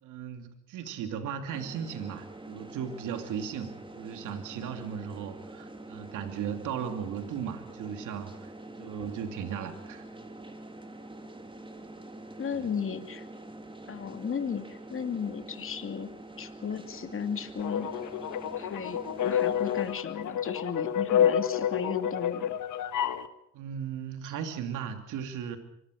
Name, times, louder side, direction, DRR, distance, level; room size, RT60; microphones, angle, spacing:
voice 1, 0.0-8.5 8.8-10.0 12.5-12.7 23.5-25.6, right 8 dB, 90° right, 7 dB, 2.7 m, -36 dB
sound 1, 1.5-19.9, right 2 dB, 15° right, 3.7 m, -46 dB
voice 2, 12.4-13.3 13.9-16.1 16.4-17.9 18.5-22.6, left 7 dB, 45° left, 8 dB, 2.5 m, -35 dB
sound 2, 17.6-23.3, left 9 dB, 80° left, 1.7 m, -29 dB
25.0 x 20.5 x 6.5 m, 0.75 s
cardioid pair, 90°, 30 cm